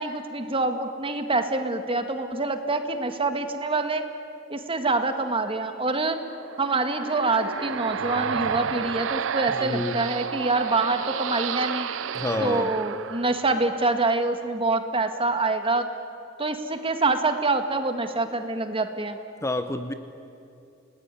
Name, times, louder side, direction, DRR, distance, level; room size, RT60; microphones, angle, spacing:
voice 1, 0.0-4.0 4.5-6.2 6.6-11.9 12.4-15.9 16.4-19.2, right 3 dB, 30° right, 7 dB, 1.8 m, -26 dB
sound 1, 6.2-13.8, right 7 dB, 85° right, 0.6 m, -31 dB
voice 2, 9.5-10.1 12.1-12.7 19.4-19.9, left 1 dB, 15° left, 9 dB, 0.9 m, -28 dB
29.0 x 20.0 x 9.8 m, 2.6 s
head